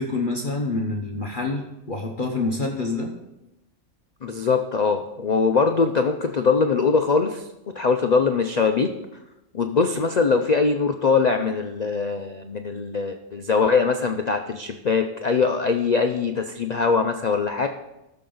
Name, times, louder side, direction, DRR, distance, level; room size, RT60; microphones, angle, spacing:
voice 1, 0.0-3.1, left 3 dB, 35° left, 1 dB, 1.1 m, -27 dB
voice 2, 4.2-7.5 7.7-8.9 9.5-17.7, left 4 dB, 60° left, 5 dB, 0.4 m, -22 dB
18.0 x 6.7 x 3.9 m, 0.95 s
omnidirectional pair, 1.6 m